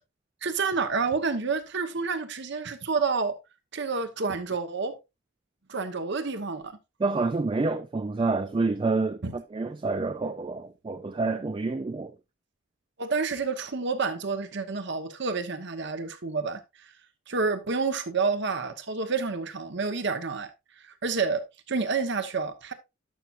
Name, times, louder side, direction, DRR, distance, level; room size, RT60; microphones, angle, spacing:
voice 1, 0.4-3.4 3.7-5.0 5.7-6.8 9.2-9.3 13.0-16.6 17.3-20.5 20.8-22.7, right 4 dB, 60° right, 1.0 m, -29 dB
voice 2, 7.0-12.1, right 3 dB, 25° right, 0.3 m, -28 dB
11.5 x 6.0 x 2.5 m
head